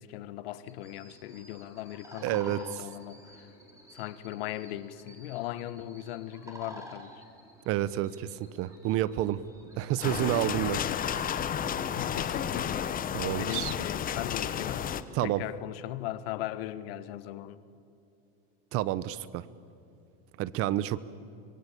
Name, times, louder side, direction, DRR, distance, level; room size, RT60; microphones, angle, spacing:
voice 1, 0.0-3.5 3.9-7.1 10.7-11.4 11.8-12.9 13.4-14.9 15.2-17.6, left 13 dB, 75° left, 1.4 m, -39 dB
sound 1, 0.7-10.2, right 1 dB, 10° right, 5.2 m, -50 dB
voice 2, 2.2-2.6 7.7-9.4 9.8-11.3 13.1-13.7 15.1-15.4 18.7-19.4 20.4-21.0, right 14 dB, 50° right, 1.1 m, -29 dB
sound 2, 10.0-15.0, left 9 dB, 30° left, 1.1 m, -32 dB
25.0 x 22.5 x 8.6 m
supercardioid pair, 125°, 30 cm